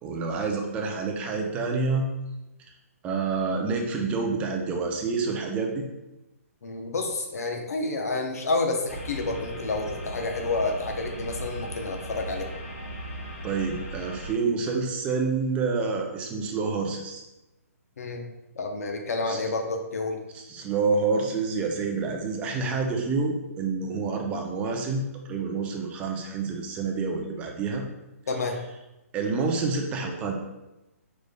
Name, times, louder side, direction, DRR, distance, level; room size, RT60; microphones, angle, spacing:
voice 1, 0.0-2.1 3.0-5.8 13.4-17.2 19.3-19.4 20.3-27.8 29.1-30.4, right 4 dB, 15° right, 2 dB, 0.4 m, -28 dB
voice 2, 6.6-12.5 18.0-18.2 18.6-20.2 28.3-28.6, left 3 dB, 75° left, 3 dB, 0.7 m, -29 dB
sound 1, 8.9-14.3, right 1 dB, 60° left, 1.5 m, -37 dB
5.0 x 3.3 x 2.2 m, 0.99 s
hypercardioid pair, 150°, 8 cm